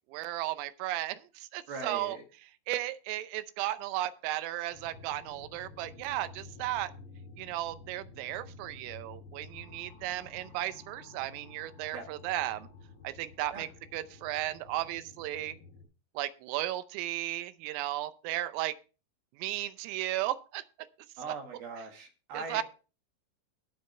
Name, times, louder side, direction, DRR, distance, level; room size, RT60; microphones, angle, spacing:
voice 1, 0.1-2.2 2.7-6.9 7.4-12.7 13.0-15.6 16.2-18.7 19.4-20.6 22.3-22.6, right 15 dB, 85° right, 12 dB, 3.4 m, -35 dB
voice 2, 1.7-2.2 11.9-12.1 13.5-13.7 21.2-22.6, right 4 dB, 60° right, 3 dB, 3.0 m, -40 dB
sound 1, 4.7-15.8, left 3 dB, 85° left, 5.6 m, -51 dB
19.0 x 6.5 x 3.3 m, 0.34 s
omnidirectional pair, 5.8 m